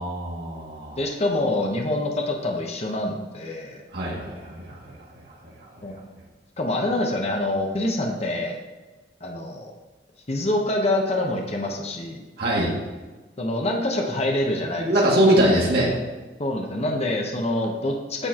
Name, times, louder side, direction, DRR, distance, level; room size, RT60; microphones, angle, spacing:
voice 1, 0.0-1.0 3.9-4.9 12.4-12.7 14.8-15.9, right 1 dB, 60° right, -6 dB, 2.3 m, -22 dB
voice 2, 1.0-3.8 5.8-6.0 6.6-8.6 9.2-9.7 10.3-12.2 13.4-14.9 16.4-18.3, left 1 dB, 35° left, 1 dB, 1.0 m, -26 dB
9.8 x 7.2 x 3.0 m, 1.2 s
head